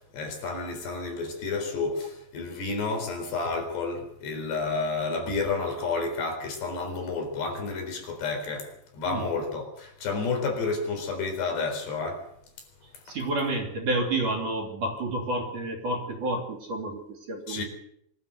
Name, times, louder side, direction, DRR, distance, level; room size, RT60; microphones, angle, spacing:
voice 1, 0.0-12.3 13.1-13.2 17.5-17.6, left 4 dB, 65° left, 6.2 m, -30 dB
voice 2, 13.1-17.6, right 2 dB, 45° right, 4.0 m, -30 dB
24.5 x 13.5 x 8.0 m
omnidirectional pair, 5.3 m